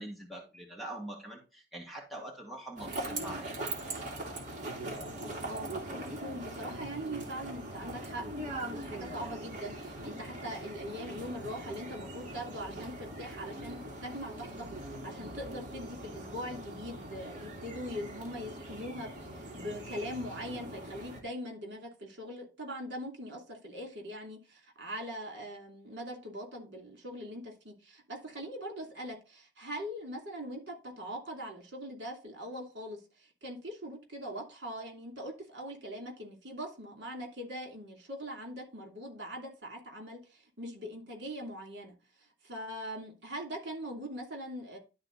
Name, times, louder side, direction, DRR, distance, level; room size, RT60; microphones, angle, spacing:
voice 1, 0.0-3.5, right 1 dB, ahead, -3 dB, 1.6 m, -44 dB
sound 1, 2.8-21.2, right 1 dB, 40° right, 2.2 m, -41 dB
voice 2, 5.4-41.9 42.4-44.8, equal, 70° right, 1 dB, 2.8 m, -42 dB
11.5 x 3.9 x 4.0 m, 0.30 s
head